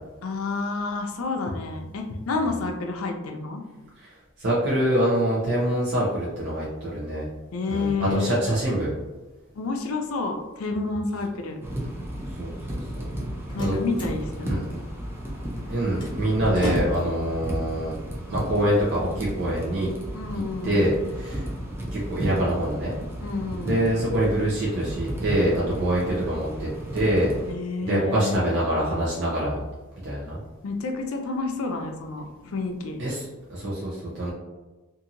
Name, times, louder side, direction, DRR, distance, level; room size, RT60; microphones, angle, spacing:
voice 1, 0.2-3.6 7.5-8.3 9.5-11.6 13.5-14.6 20.1-20.9 23.2-23.9 27.5-28.4 30.6-33.0, left 3 dB, 85° left, 3 dB, 0.5 m, -29 dB
voice 2, 4.4-7.2 7.7-8.9 12.4-13.0 13.6-13.8 14.4-14.6 15.7-17.9 18.3-19.9 20.6-21.5 21.9-22.9 23.6-27.3 27.8-29.6 30.0-30.4 33.0-34.3, right 1 dB, 55° right, -7 dB, 0.7 m, -25 dB
sound 1, 11.6-27.5, equal, 10° right, 0.4 m, -34 dB
Slam, 13.0-19.0, left 1 dB, 25° left, 0.8 m, -38 dB
2.8 x 2.6 x 2.5 m, 1.2 s
head